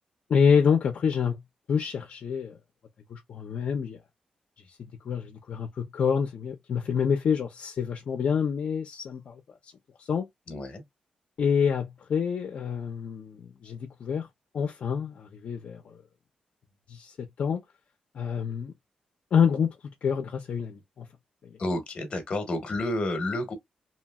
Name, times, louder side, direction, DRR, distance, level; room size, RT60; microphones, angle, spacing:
voice 1, 0.3-1.4 1.7-2.6 3.1-4.0 5.0-9.4 10.0-10.3 11.4-14.3 14.5-15.9 16.9-17.6 18.1-18.7 19.3-19.7 20.0-21.1, left 6 dB, 60° left, 0.6 m, -27 dB
voice 2, 10.5-10.8 21.6-23.6, left 1 dB, 45° left, 1.1 m, -30 dB
3.0 x 2.8 x 2.3 m
wide cardioid pair, 135°, 2 cm